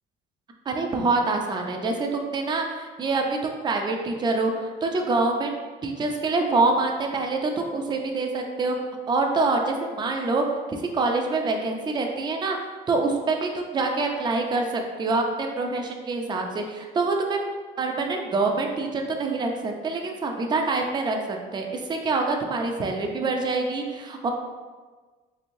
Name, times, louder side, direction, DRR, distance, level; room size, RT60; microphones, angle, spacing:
voice 1, 0.7-5.5 5.8-8.7 9.1-10.4 10.7-12.6 12.9-14.7 15.0-17.4 17.8-24.3, right 3 dB, 25° right, 3 dB, 0.4 m, -25 dB
3.4 x 3.1 x 2.6 m, 1.4 s
cardioid pair, 110°, 17 cm